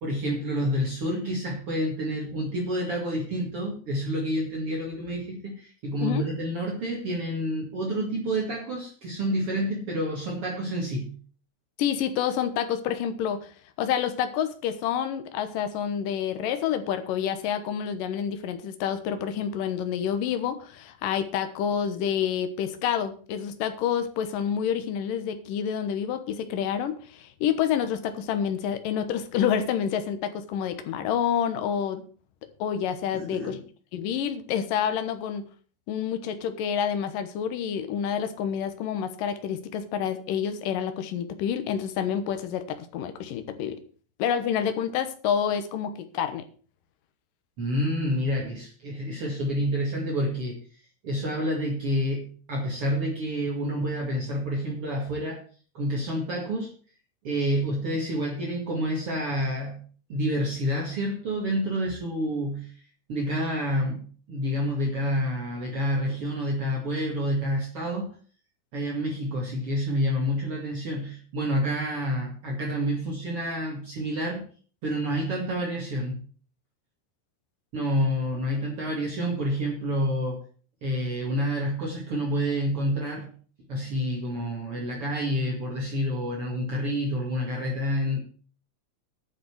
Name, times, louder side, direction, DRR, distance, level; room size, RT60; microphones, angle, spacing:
voice 1, 0.0-11.2 33.1-33.6 47.6-50.6 51.0-55.4 55.7-56.7 57.2-59.8 60.1-62.7 63.1-68.1 68.7-74.5 74.8-76.2 77.7-80.4 80.8-83.3 83.7-88.2, equal, 45° right, -1 dB, 2.8 m, -28 dB
voice 2, 11.8-13.5 13.8-32.0 32.6-33.6 33.9-35.4 35.9-43.7 44.2-46.4, left 8 dB, 80° left, 9 dB, 2.8 m, -28 dB
10.0 x 5.9 x 8.0 m, 0.42 s
omnidirectional pair, 3.9 m